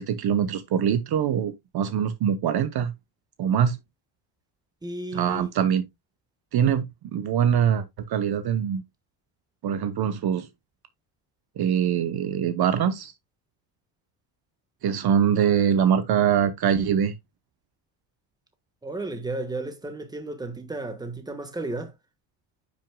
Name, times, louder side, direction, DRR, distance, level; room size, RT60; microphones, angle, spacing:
voice 1, 0.0-2.9 3.4-3.8 5.1-5.8 6.5-8.8 9.6-10.5 11.6-13.1 14.8-17.1, right 8 dB, 50° right, 0.9 m, -23 dB
voice 2, 4.8-5.5 18.8-21.9, right 2 dB, 10° right, 1.4 m, -33 dB
9.9 x 6.1 x 2.3 m
cardioid pair, 140°, 49 cm